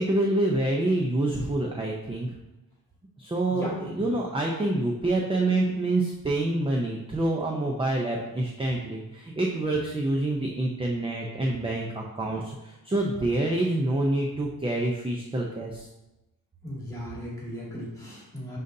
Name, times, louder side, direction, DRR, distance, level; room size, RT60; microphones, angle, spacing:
voice 1, 0.0-2.3 3.2-15.9, right 2 dB, 15° right, -1 dB, 0.5 m, -27 dB
voice 2, 3.5-4.1 16.6-18.6, equal, 10° left, -5 dB, 2.1 m, -37 dB
10.5 x 4.0 x 2.6 m, 0.99 s
wide cardioid pair, 175°, 37 cm